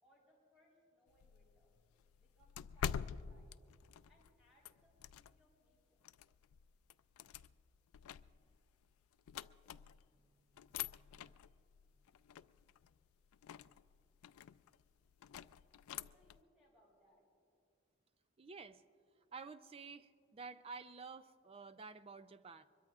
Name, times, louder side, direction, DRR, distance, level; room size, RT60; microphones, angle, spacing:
voice 1, 0.0-1.7 2.2-3.6 4.1-6.0 15.9-17.3, equal, 5° right, -5 dB, 4.1 m, -71 dB
sound 1, 1.1-5.6 6.0-10.2 10.5-16.4, left 8 dB, 90° left, 0.3 m, -48 dB
voice 2, 18.4-18.8 19.3-22.7, right 4 dB, 25° right, 11 dB, 0.4 m, -51 dB
24.0 x 22.0 x 2.4 m, 2.4 s
head